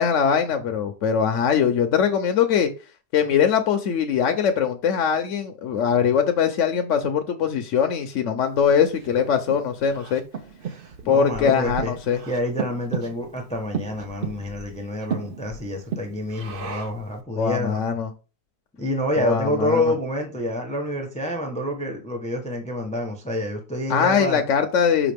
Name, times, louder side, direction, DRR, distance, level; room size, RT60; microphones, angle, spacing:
voice 1, 0.0-2.7 3.1-10.2 11.1-12.2 17.3-18.1 19.2-19.8 23.9-25.1, left 7 dB, 60° left, 0.8 m, -21 dB
Breathing, 8.6-17.1, right 6 dB, 55° right, 0.6 m, -34 dB
voice 2, 11.0-11.9 12.3-17.8 18.8-24.4, left 1 dB, 5° left, 0.7 m, -27 dB
5.7 x 4.9 x 3.5 m
omnidirectional pair, 1.9 m